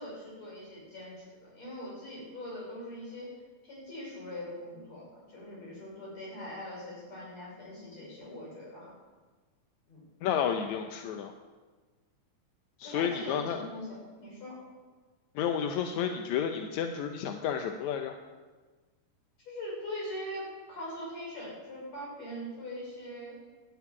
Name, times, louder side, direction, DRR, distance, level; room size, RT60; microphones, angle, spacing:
voice 1, 0.0-8.9 9.9-10.0 12.8-14.6 19.5-23.4, left 1 dB, 55° left, -5 dB, 7.1 m, -42 dB
voice 2, 10.2-11.3 12.8-13.6 15.4-18.2, left 8 dB, 75° left, 5 dB, 1.9 m, -31 dB
12.5 x 8.5 x 9.5 m, 1.3 s
omnidirectional pair, 3.8 m